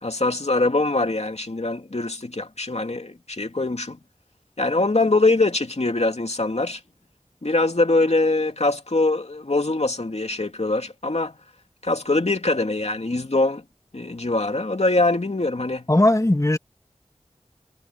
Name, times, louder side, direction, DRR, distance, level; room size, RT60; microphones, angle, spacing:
voice 1, 0.0-4.0 4.6-6.8 7.4-11.3 11.8-13.6 13.9-15.9, left 2 dB, 65° left, 2.7 m, -23 dB
voice 2, 15.9-16.6, left 1 dB, 25° left, 1.6 m, -18 dB
wide cardioid pair, 45°, 12 cm